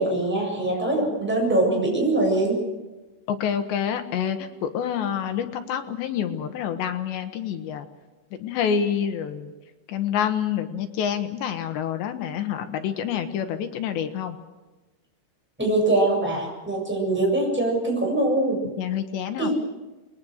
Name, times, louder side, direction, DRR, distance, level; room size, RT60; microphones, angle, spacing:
voice 1, 0.0-2.6 15.6-18.6 19.4-19.5, right 2 dB, ahead, -1 dB, 7.2 m, -23 dB
voice 2, 3.3-7.9 8.4-9.5 9.9-14.4 18.8-19.5, left 8 dB, 75° left, 8 dB, 3.5 m, -27 dB
29.0 x 21.0 x 6.5 m, 1.2 s
omnidirectional pair, 5.3 m